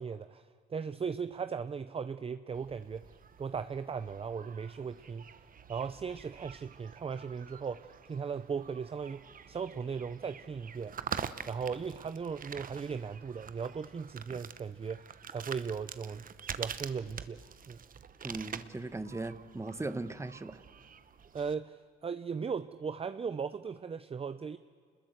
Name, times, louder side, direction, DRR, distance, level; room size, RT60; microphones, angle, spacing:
voice 1, 0.0-5.2 5.7-10.9 11.5-16.2 16.6-17.4 17.7-17.8 21.3-24.6, right 6 dB, 30° right, 12 dB, 0.6 m, -37 dB
sound 1, 2.5-21.5, right 7 dB, 45° right, 1.0 m, -46 dB
voice 2, 18.2-20.6, right 2 dB, 15° right, 12 dB, 1.1 m, -38 dB
27.0 x 21.0 x 8.1 m, 2.1 s
cardioid pair, 90°, 20 cm